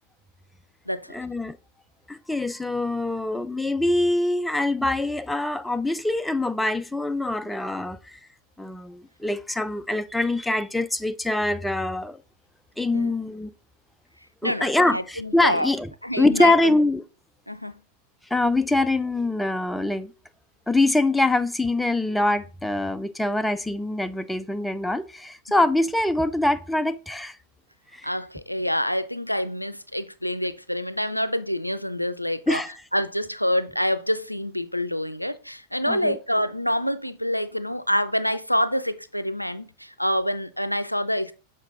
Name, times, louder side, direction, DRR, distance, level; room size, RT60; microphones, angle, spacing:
voice 1, 1.1-1.6 2.1-8.2 8.6-12.2 12.8-13.5 14.4-15.9 16.2-17.0 18.3-20.1 20.7-27.4 27.9-28.1 32.5-32.7 35.9-36.2, left 2 dB, 5° left, 0.3 m, -24 dB
voice 2, 14.4-15.7 16.0-16.7 17.5-17.7 28.0-32.6 32.9-41.3, equal, 90° left, 0.4 m, -27 dB
6.3 x 4.1 x 3.6 m
figure-of-eight pair, 90°, 0 cm